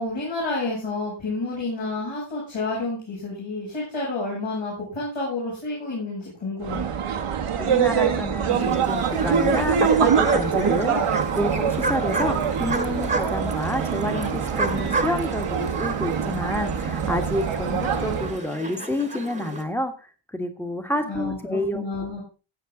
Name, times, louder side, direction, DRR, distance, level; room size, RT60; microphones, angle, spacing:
voice 1, 0.0-6.9 21.0-22.2, left 2 dB, 65° left, -6 dB, 7.0 m, -30 dB
sound 1, 6.6-18.4, right 7 dB, 85° right, 1.5 m, -24 dB
voice 2, 7.6-20.1 20.3-21.8, left 1 dB, 5° left, 6 dB, 1.6 m, -29 dB
sound 2, 8.5-19.6, right 3 dB, 15° right, 1.5 m, -30 dB
16.0 x 8.6 x 3.8 m, 0.33 s
wide cardioid pair, 160°, 50 cm